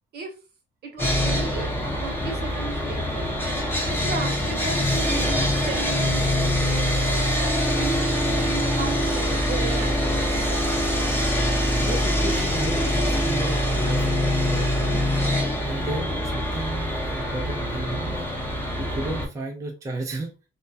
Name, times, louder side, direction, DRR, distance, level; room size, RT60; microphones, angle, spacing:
voice 1, 0.9-1.7 2.0-3.3 3.9-7.0 7.7-10.9, right 4 dB, 55° right, 3 dB, 0.9 m, -35 dB
Sawing, 1.0-19.3, equal, 10° left, 0.7 m, -24 dB
voice 2, 11.8-15.0 15.7-18.3 18.8-20.3, right 2 dB, 15° right, 1 dB, 0.4 m, -33 dB
2.2 x 2.1 x 2.7 m, 0.31 s
cardioid pair, 130°, 20 cm